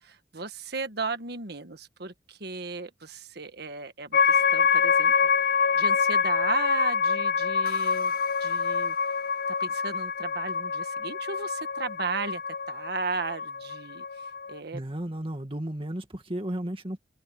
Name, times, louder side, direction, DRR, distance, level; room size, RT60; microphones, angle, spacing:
voice 1, 0.0-5.1 5.7-8.1 8.4-8.9 9.5-12.4 12.7-14.0 14.5-14.8, right 4 dB, 60° right, 1.6 m, -35 dB
sound 1, 4.1-14.6, left 6 dB, 55° left, 0.6 m, -26 dB
voice 2, 14.7-17.0, right 1 dB, 30° right, 2.3 m, -34 dB
open air
head